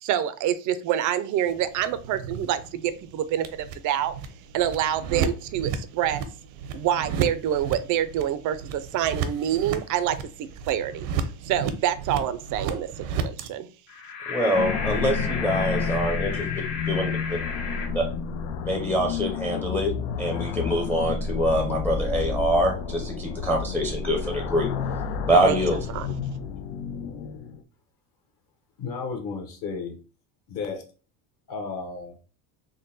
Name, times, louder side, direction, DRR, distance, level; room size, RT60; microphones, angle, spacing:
voice 1, 0.0-4.1 4.5-6.2 6.7-10.2 10.7-11.1 11.4-13.7 25.4-25.6 25.9-26.1, right 10 dB, 45° right, 0.4 m, -26 dB
sound 1, 1.5-13.5, right 6 dB, 75° right, 0.7 m, -33 dB
sound 2, 13.9-17.9, left 5 dB, 65° left, 1.6 m, -33 dB
voice 2, 14.3-16.4 16.9-17.4 17.9-18.0 18.6-19.9 20.2-24.7 25.3-25.8, equal, 5° left, 0.5 m, -25 dB
sound 3, 14.5-27.6, left 5 dB, 85° left, 0.6 m, -30 dB
voice 3, 28.8-30.0 30.5-30.8 31.5-32.1, left 5 dB, 45° left, 1.0 m, -33 dB
3.8 x 2.1 x 3.8 m
cardioid pair, 125°, 45 cm